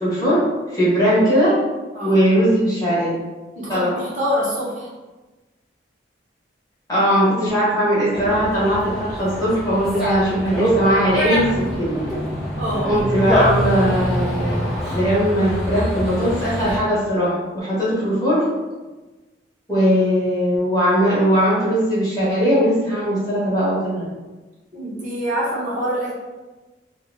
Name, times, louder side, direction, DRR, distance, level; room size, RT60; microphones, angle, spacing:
voice 1, 0.0-1.6 2.0-3.1 3.7-3.9 6.9-11.5 11.8-11.9 12.8-18.5 19.7-24.0, equal, 20° left, -9 dB, 1.2 m, -19 dB
voice 2, 3.5-4.9 12.6-12.9 24.7-26.1, equal, 40° right, -6 dB, 0.9 m, -25 dB
Dog, 8.1-16.8, equal, ahead, 0.7 m, -24 dB
3.0 x 2.3 x 3.7 m, 1.2 s
head